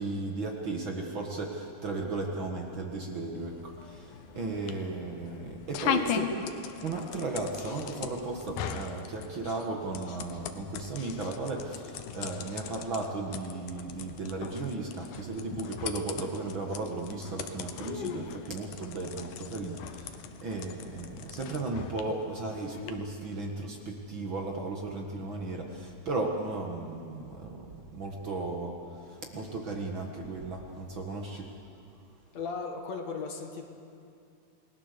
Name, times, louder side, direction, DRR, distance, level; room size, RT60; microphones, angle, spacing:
voice 1, 0.0-6.3 6.8-31.5, right 3 dB, 45° right, 1 dB, 2.1 m, -35 dB
sound 1, 3.4-22.9, left 8 dB, 80° left, 2.5 m, -39 dB
voice 2, 32.3-33.7, left 5 dB, 60° left, 3 dB, 2.7 m, -36 dB
29.0 x 19.5 x 6.9 m, 2.5 s
omnidirectional pair, 3.6 m